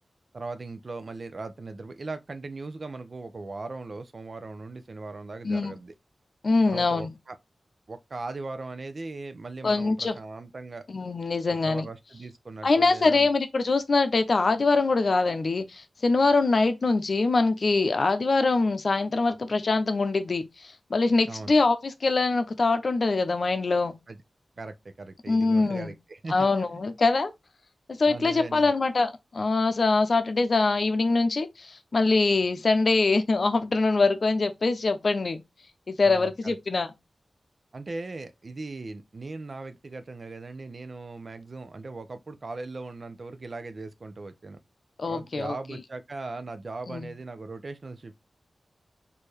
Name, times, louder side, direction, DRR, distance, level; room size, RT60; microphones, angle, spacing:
voice 1, 0.3-5.9 6.7-7.4 7.9-10.8 11.5-13.3 21.2-21.5 24.1-24.2 24.6-26.8 28.1-28.7 36.0-36.6 37.7-44.6 45.0-48.2, right 3 dB, 55° right, 0.6 m, -39 dB
voice 2, 6.4-7.1 9.6-10.2 10.9-11.8 12.6-23.9 25.3-25.9 26.3-27.3 28.0-35.4 35.9-36.9 45.0-45.5 46.9-47.1, left 3 dB, 60° left, 0.6 m, -23 dB
4.4 x 2.8 x 3.2 m
cardioid pair, 60°, 0 cm